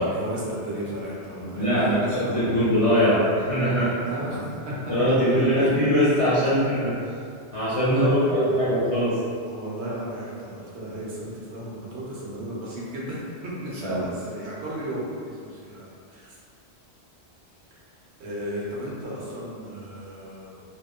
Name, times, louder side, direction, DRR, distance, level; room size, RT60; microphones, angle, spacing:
voice 1, 0.0-2.3 3.8-5.1 5.5-5.6 7.9-8.6 9.5-16.4 18.2-20.6, right 1 dB, 70° right, -6 dB, 0.9 m, -34 dB
voice 2, 1.5-4.0 4.9-7.0 7.5-9.2 13.8-14.1, equal, 45° left, -12 dB, 0.5 m, -22 dB
2.8 x 2.1 x 2.3 m, 2.3 s
omnidirectional pair, 1.2 m